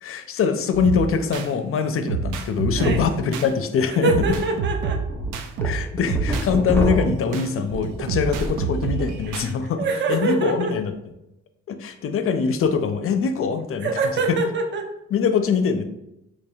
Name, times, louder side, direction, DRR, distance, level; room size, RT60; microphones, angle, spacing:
voice 1, 0.0-4.1 5.6-10.9 11.7-13.9 15.1-15.8, left 6 dB, 45° left, 9 dB, 0.5 m, -23 dB
sound 1, 0.7-1.5 2.1-3.5 4.1-6.5 6.8-9.5, right 5 dB, 85° right, 0.5 m, -28 dB
voice 2, 2.8-3.1 3.9-5.0 9.3-9.4 9.8-10.7 13.8-14.9, right 4 dB, 40° right, 3 dB, 0.6 m, -24 dB
sound 2, 3.0-3.1 3.5-3.6 4.2-4.4 4.8-8.6 9.0-9.4, equal, 5° left, 0.7 m, -28 dB
4.3 x 3.0 x 2.3 m, 0.87 s
cardioid pair, 90°, 30 cm